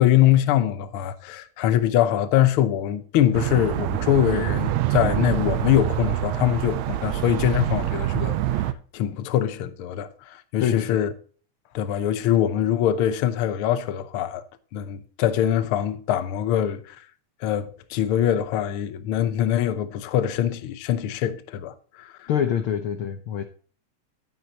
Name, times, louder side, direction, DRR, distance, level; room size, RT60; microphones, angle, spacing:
voice 1, 0.0-8.7 8.9-11.1 11.7-14.4 14.7-17.0 17.4-22.3, left 11 dB, 70° left, 1.3 m, -23 dB
sound 1, 3.3-8.7, right 14 dB, 75° right, 1.7 m, -26 dB
voice 2, 10.6-11.0 22.3-23.4, left 9 dB, 90° left, 1.1 m, -25 dB
11.0 x 9.6 x 2.9 m
omnidirectional pair, 3.5 m